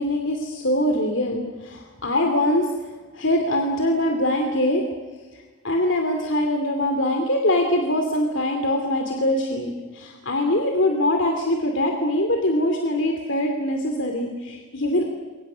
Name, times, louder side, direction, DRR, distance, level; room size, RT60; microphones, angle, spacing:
voice 1, 0.0-2.7 3.1-4.8 5.6-15.1, left 1 dB, 60° left, 3 dB, 2.7 m, -23 dB
28.5 x 24.5 x 6.3 m, 1.3 s
head